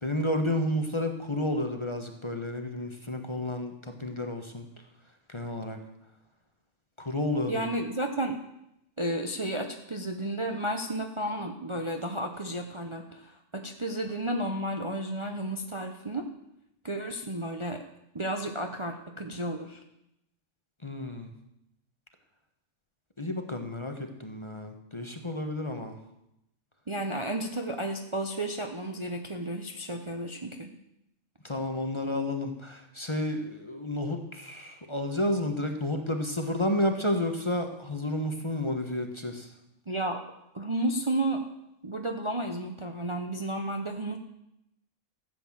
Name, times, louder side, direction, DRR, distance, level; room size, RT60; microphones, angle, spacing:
voice 1, 0.0-4.6 5.3-5.8 7.0-7.7 20.8-21.3 23.2-26.0 31.4-39.5, left 1 dB, 20° left, 5 dB, 1.3 m, -31 dB
voice 2, 7.5-8.4 9.0-16.3 16.8-17.8 18.1-19.8 26.9-30.7 39.9-40.2 40.5-41.4 41.8-44.2, right 1 dB, 25° right, 4 dB, 0.9 m, -32 dB
14.5 x 8.4 x 7.5 m, 0.84 s
omnidirectional pair, 1.4 m